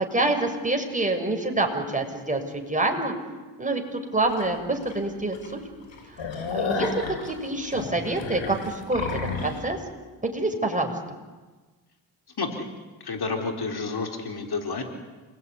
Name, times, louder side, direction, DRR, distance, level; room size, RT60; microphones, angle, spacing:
voice 1, 0.0-3.1 3.6-5.5 6.2-9.8 10.2-10.9, right 2 dB, 15° right, 3 dB, 6.4 m, -27 dB
sound 1, 4.3-4.4 4.9-5.0 5.3-5.5 5.8-9.6, left 4 dB, 75° left, 7.1 m, -31 dB
voice 2, 12.4-12.7 13.0-14.8, left 4 dB, 55° left, 3 dB, 4.4 m, -30 dB
29.0 x 20.5 x 9.9 m, 1.3 s
cardioid pair, 55°, 46 cm